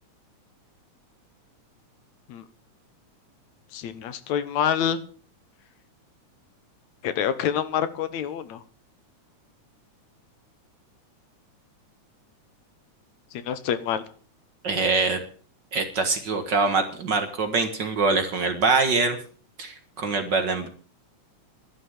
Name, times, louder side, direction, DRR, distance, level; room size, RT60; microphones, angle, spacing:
voice 1, 3.7-5.0 7.0-8.6 13.3-14.0, left 9 dB, 70° left, 13 dB, 2.4 m, -27 dB
voice 2, 14.6-15.2 15.7-19.2 19.6-20.7, right 4 dB, 45° right, 7 dB, 1.8 m, -24 dB
12.0 x 11.5 x 7.3 m, 0.42 s
omnidirectional pair, 3.5 m